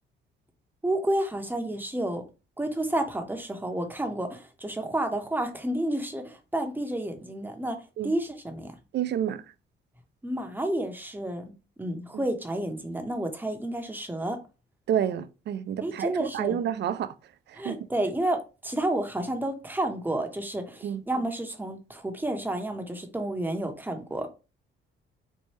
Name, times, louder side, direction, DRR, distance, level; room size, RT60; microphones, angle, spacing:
voice 1, 0.8-2.2 2.6-7.8 8.0-8.7 10.2-11.4 11.8-14.4 15.8-16.6 17.5-24.3, right 1 dB, 10° right, 0.8 m, -30 dB
voice 2, 8.9-9.4 14.9-17.1 17.5-17.8 20.8-21.0, right 10 dB, 60° right, 0.4 m, -29 dB
4.2 x 2.2 x 3.2 m
cardioid pair, 90°, 20 cm